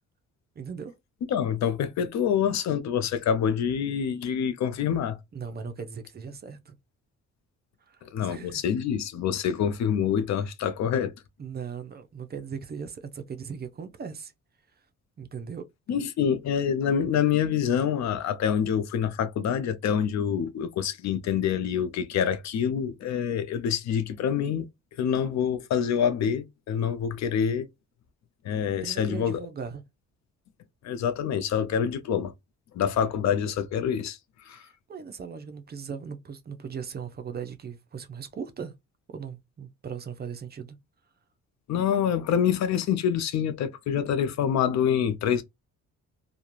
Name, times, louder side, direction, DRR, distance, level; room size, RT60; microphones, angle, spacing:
voice 1, 0.6-0.9 5.3-6.8 7.9-8.6 11.4-14.3 15.2-15.7 28.8-29.8 34.5-38.7 39.1-40.8, right 6 dB, 35° right, 0.5 m, -38 dB
voice 2, 1.3-5.2 8.1-11.1 15.9-24.7 25.0-27.7 28.4-29.4 30.8-32.3 32.7-34.2 34.5-34.6 41.7-45.4, left 8 dB, 65° left, 0.5 m, -26 dB
2.3 x 2.2 x 2.9 m
cardioid pair, 90°, 30 cm